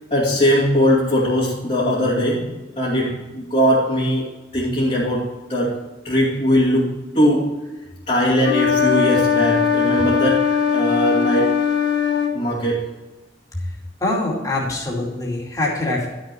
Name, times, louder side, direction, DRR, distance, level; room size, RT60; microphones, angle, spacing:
voice 1, 0.1-5.8 6.0-7.5 8.1-10.4 10.7-11.5 12.3-12.9, equal, 35° left, -8 dB, 2.4 m, -20 dB
sound 1, 8.4-12.3, left 7 dB, 80° left, 1.6 m, -19 dB
voice 2, 14.0-16.1, left 2 dB, 20° left, -4 dB, 2.5 m, -23 dB
12.5 x 6.5 x 4.5 m, 1.1 s
head